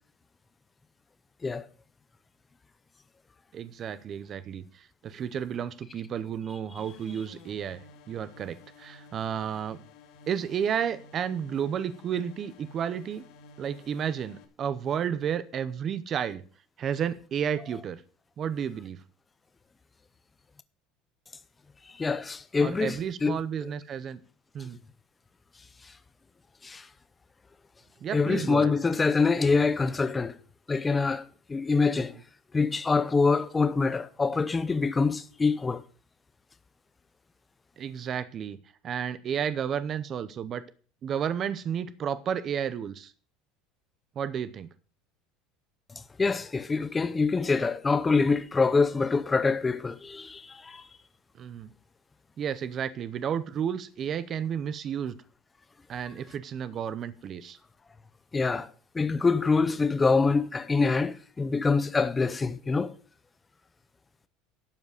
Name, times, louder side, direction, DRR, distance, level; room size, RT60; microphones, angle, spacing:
voice 1, 3.5-7.8 8.1-9.8 10.3-13.2 13.6-16.4 16.8-18.0 18.4-19.0 22.6-24.2 24.5-24.8 28.0-28.7 31.9-32.0 37.8-38.6 38.8-40.6 41.0-43.1 44.2-44.7 51.4-51.7 52.4-55.2 55.9-57.6, right 8 dB, 25° right, 0.7 m, -32 dB
sound 1, 6.8-14.4, left 3 dB, 55° left, 2.7 m, -53 dB
voice 2, 21.9-23.7 26.6-26.9 28.1-30.4 30.7-32.2 32.5-35.8 46.2-50.9 58.3-58.7 58.9-62.9, left 4 dB, 10° left, 0.6 m, -25 dB
12.0 x 7.9 x 6.7 m
cardioid pair, 180°, 0 cm